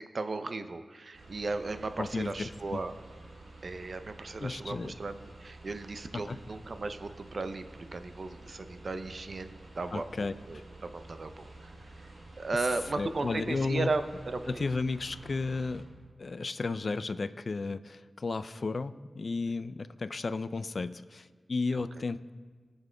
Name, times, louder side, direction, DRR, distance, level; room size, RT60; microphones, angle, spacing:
voice 1, 0.1-2.9 3.6-11.5 12.4-14.6 21.7-21.8, right 3 dB, 55° right, 9 dB, 0.5 m, -36 dB
sound 1, 1.1-15.8, right 2 dB, 85° right, 1.7 m, -50 dB
voice 2, 2.0-2.8 4.4-4.9 6.1-6.4 9.9-10.6 13.0-13.9 14.5-15.8 16.2-22.3, left 3 dB, 55° left, 14 dB, 0.3 m, -33 dB
20.5 x 7.1 x 2.2 m, 1.5 s
wide cardioid pair, 70°, 0 cm